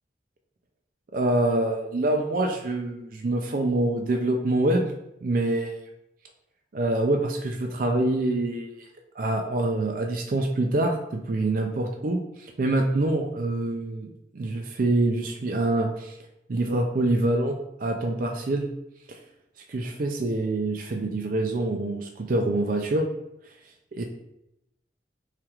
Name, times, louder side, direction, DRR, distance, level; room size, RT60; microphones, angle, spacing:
voice 1, 1.1-4.9 5.2-5.8 6.7-8.8 9.2-16.2 16.5-18.7 19.1-19.2 19.7-23.1 24.0-24.1, right 2 dB, 50° right, 2 dB, 0.4 m, -25 dB
5.8 x 3.3 x 2.4 m, 0.85 s
head